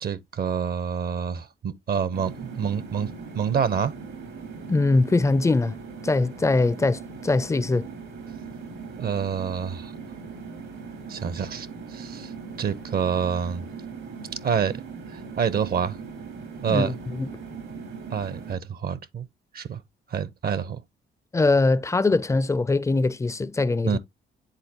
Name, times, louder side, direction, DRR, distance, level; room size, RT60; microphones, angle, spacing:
voice 1, 0.0-3.9 9.0-9.9 11.1-12.3 12.6-13.7 14.4-14.8 15.1-16.0 16.6-17.0 18.1-19.3 19.5-19.8 20.1-20.8 23.8-24.0, right 7 dB, 50° right, 0.6 m, -27 dB
sound 1, 2.1-18.6, right 5 dB, 90° right, 2.8 m, -39 dB
voice 2, 4.7-5.8 6.0-7.9 16.7-17.3 21.3-24.0, left 3 dB, 15° left, 0.4 m, -22 dB
9.9 x 4.0 x 2.8 m
cardioid pair, 90°, 20 cm